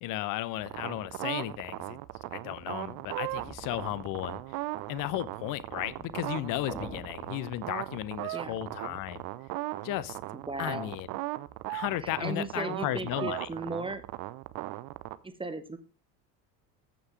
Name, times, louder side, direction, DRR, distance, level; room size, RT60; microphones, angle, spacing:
voice 1, 0.0-2.0 2.3-4.4 4.9-9.2 9.8-10.2 10.6-11.1 11.7-13.5, left 15 dB, 45° left, 0.8 m, -34 dB
sound 1, 0.6-15.2, right 18 dB, 45° right, 0.8 m, -38 dB
sound 2, 3.1-8.1, equal, 10° left, 1.9 m, -50 dB
voice 2, 10.3-10.9 12.0-14.0 15.2-15.8, right 3 dB, 10° right, 1.1 m, -36 dB
14.0 x 6.1 x 3.3 m
figure-of-eight pair, 65°, 46 cm